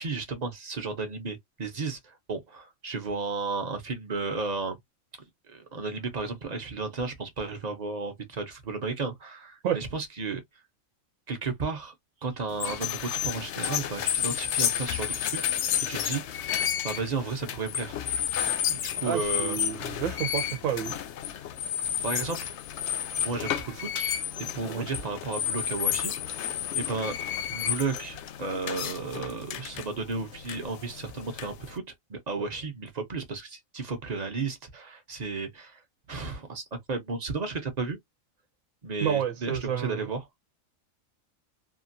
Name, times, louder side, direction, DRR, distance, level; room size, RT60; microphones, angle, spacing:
voice 1, 0.0-4.8 5.5-10.4 11.3-11.9 12.2-16.2 16.8-18.0 18.7-20.0 22.0-22.6 23.2-26.5 26.7-27.1 27.5-31.8 32.1-35.8 36.1-38.0 38.8-40.2, right 4 dB, 40° right, 0.6 m, -33 dB
sound 1, 12.5-31.8, left 10 dB, 65° left, 0.8 m, -31 dB
voice 2, 19.0-20.9 24.7-24.9 39.0-40.0, right 9 dB, 80° right, 1.0 m, -30 dB
2.9 x 2.4 x 2.5 m
omnidirectional pair, 1.4 m